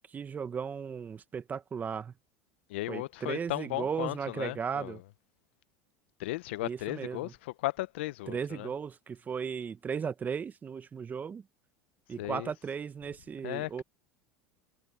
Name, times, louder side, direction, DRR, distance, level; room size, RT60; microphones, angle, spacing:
voice 1, 0.1-2.1 2.9-5.0 6.6-7.3 8.3-11.4 12.1-13.8, right 6 dB, 25° right, 1.3 m, -36 dB
voice 2, 2.7-5.0 6.2-8.7 12.2-12.5 13.4-13.8, left 18 dB, 75° left, 1.0 m, -36 dB
hypercardioid pair, 95°, 6 cm